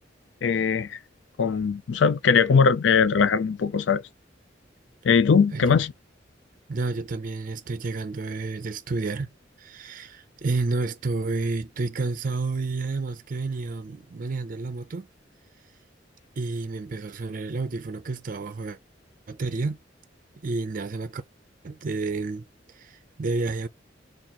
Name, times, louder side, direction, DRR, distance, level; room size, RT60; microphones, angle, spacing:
voice 1, 0.4-1.0 1.4-4.0 5.0-5.9, left 5 dB, 80° left, 0.4 m, -20 dB
voice 2, 6.7-9.3 9.6-15.1 16.4-18.8 19.3-19.8 20.4-21.2 21.6-23.7, right 3 dB, 45° right, 0.5 m, -30 dB
2.9 x 2.5 x 4.0 m
head